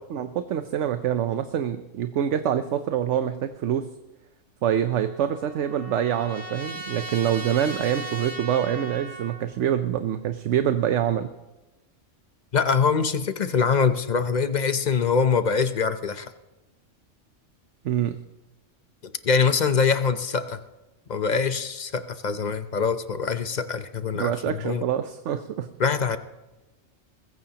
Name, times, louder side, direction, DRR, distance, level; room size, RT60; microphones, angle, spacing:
voice 1, 0.1-3.8 4.6-11.3 17.8-18.2 24.1-25.7, right 10 dB, 75° right, 9 dB, 1.0 m, -25 dB
Trumpet, 4.7-9.4, right 1 dB, 20° right, 2.7 m, -38 dB
voice 2, 12.5-16.3 19.0-20.6 21.1-24.8 25.8-26.2, left 5 dB, 45° left, 10 dB, 0.7 m, -24 dB
21.0 x 16.0 x 2.9 m, 1.1 s
omnidirectional pair, 1.3 m